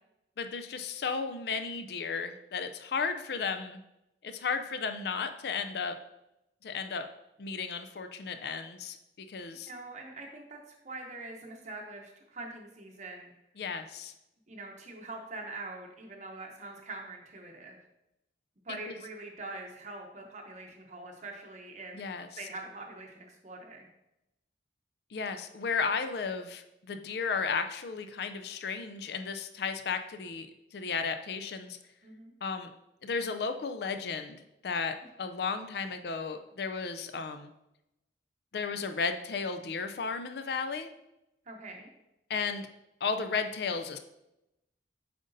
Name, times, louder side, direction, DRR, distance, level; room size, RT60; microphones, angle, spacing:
voice 1, 0.4-3.8 4.2-6.0 6.6-7.0 7.4-9.7 13.6-14.1 18.9-19.0 21.9-22.3 25.1-31.8 32.4-32.7 33.0-34.4 34.6-37.5 38.5-40.9 42.3-42.7 43.0-44.0, left 5 dB, 60° left, 8 dB, 0.4 m, -34 dB
voice 2, 9.7-13.3 14.5-17.8 18.6-22.1 22.4-23.9 32.0-32.3 41.5-41.9, right 2 dB, 40° right, 1 dB, 0.7 m, -44 dB
7.7 x 5.1 x 2.6 m, 0.89 s
head